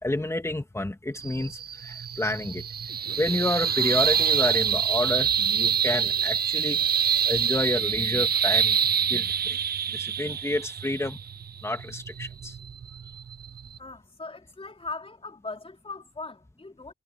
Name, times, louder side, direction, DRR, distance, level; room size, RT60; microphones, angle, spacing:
voice 1, 0.0-2.6 3.2-6.8 7.3-11.2 11.6-12.5, left 1 dB, 15° left, 2.7 m, -29 dB
sound 1, 1.2-13.8, right 8 dB, 55° right, 0.5 m, -26 dB
sound 2, 3.1-3.3 5.3-5.6 6.9-7.3 8.3-8.6 10.1-10.2, right 2 dB, 20° right, 8.0 m, -58 dB
voice 2, 13.7-16.9, left 3 dB, 30° left, 3.7 m, -40 dB
wide cardioid pair, 105°, 19 cm